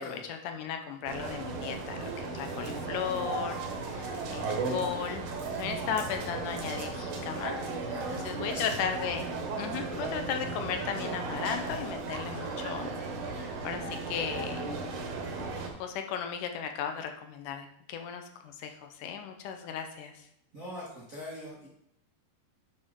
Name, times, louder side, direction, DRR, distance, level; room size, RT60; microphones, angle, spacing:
voice 1, 0.0-7.6 8.1-12.9 13.3-14.7 15.8-20.3, left 7 dB, 85° left, 6 dB, 2.3 m, -36 dB
sound 1, 1.1-15.7, right 3 dB, 75° right, 2.7 m, -35 dB
voice 2, 7.9-8.6 20.5-21.7, left 1 dB, 45° right, -6 dB, 1.1 m, -42 dB
10.0 x 5.3 x 3.7 m, 0.76 s
omnidirectional pair, 3.6 m